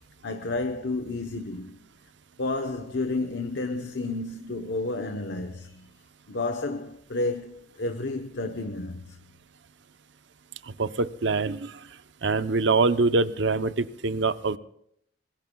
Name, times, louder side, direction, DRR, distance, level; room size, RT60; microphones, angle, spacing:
voice 1, 0.2-1.8 2.4-5.9 6.3-9.2, left 2 dB, 70° left, 1.0 m, -31 dB
voice 2, 10.6-11.8 12.2-14.6, right 3 dB, 75° right, 0.7 m, -24 dB
26.0 x 21.5 x 2.3 m
head